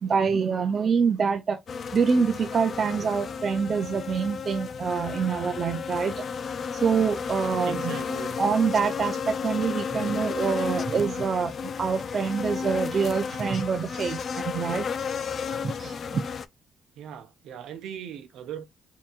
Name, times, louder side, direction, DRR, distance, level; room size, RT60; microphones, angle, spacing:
voice 1, 0.0-1.6 1.9-6.2 6.7-8.0 8.4-11.5 11.8-14.9 15.6-16.2, right 6 dB, 45° right, 0.5 m, -26 dB
sound 1, 1.7-16.5, left 6 dB, 50° left, 0.4 m, -33 dB
voice 2, 7.6-8.4 17.0-18.6, right 9 dB, 80° right, 0.9 m, -39 dB
4.5 x 2.9 x 2.4 m
cardioid pair, 90°, 0 cm